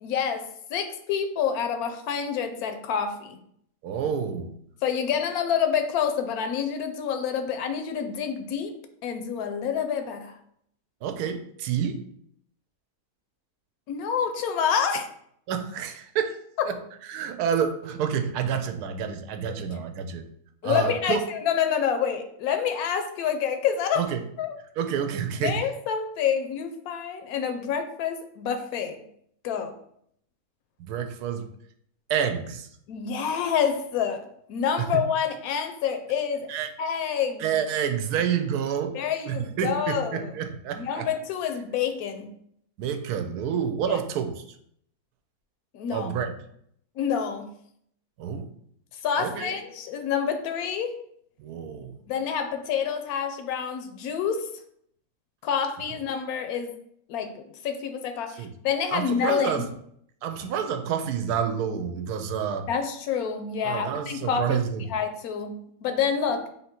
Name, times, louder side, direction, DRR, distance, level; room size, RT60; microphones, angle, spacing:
voice 1, 0.0-3.4 4.8-8.7 9.0-10.4 13.9-15.1 20.6-24.1 24.4-24.6 25.4-29.0 29.4-29.8 32.9-36.5 36.8-37.5 38.9-40.3 40.8-42.3 43.9-44.0 45.7-46.1 47.0-47.5 48.9-51.0 52.1-54.5 55.4-56.8 57.1-59.7 62.7-66.5, left 7 dB, 75° left, 7 dB, 1.0 m, -28 dB
voice 2, 3.8-4.5 11.0-12.0 15.5-16.4 16.6-16.7 17.1-20.2 20.6-21.2 23.9-24.2 24.8-25.6 30.8-31.5 32.1-32.7 36.5-36.7 37.4-39.0 39.3-41.1 42.8-44.3 45.9-46.3 48.2-48.5 49.2-49.6 51.4-51.9 58.4-58.5 58.9-59.6 60.2-62.7 63.6-64.9 66.3-66.4, right 8 dB, 85° right, 7 dB, 1.1 m, -28 dB
3.6 x 2.8 x 4.2 m, 0.69 s
omnidirectional pair, 1.6 m